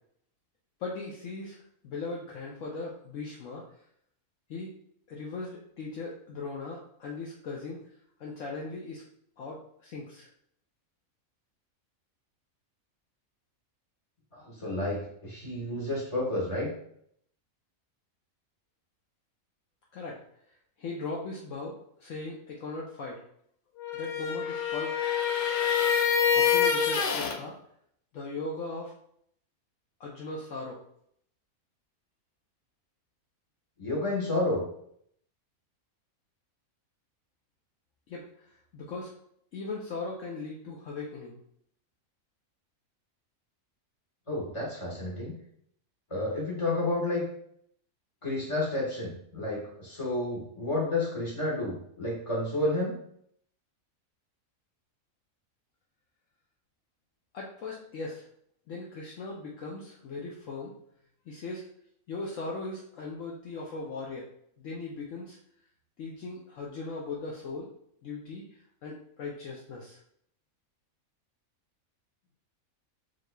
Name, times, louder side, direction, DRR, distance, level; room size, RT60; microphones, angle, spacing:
voice 1, 0.8-1.6 1.8-3.6 4.5-4.7 5.1-7.8 8.2-9.0 9.4-10.3 19.9-20.2 20.8-21.7 22.0-23.2 23.9-24.9 26.3-27.5 28.1-28.9 30.0-30.8 38.1-38.2 38.7-39.1 39.5-41.4 57.3-58.2 58.7-60.7 61.3-61.7 62.1-64.3 64.6-65.4 66.0-67.7 68.0-68.4 68.8-70.0, left 3 dB, 65° left, -2 dB, 1.0 m, -38 dB
voice 2, 14.3-16.7 33.8-34.6 44.3-45.3 46.1-47.2 48.2-52.9, left 2 dB, 20° left, -4 dB, 1.4 m, -30 dB
sound 1, 23.8-27.4, left 7 dB, 85° left, 0.4 m, -26 dB
7.4 x 3.0 x 2.2 m, 0.69 s
omnidirectional pair, 1.5 m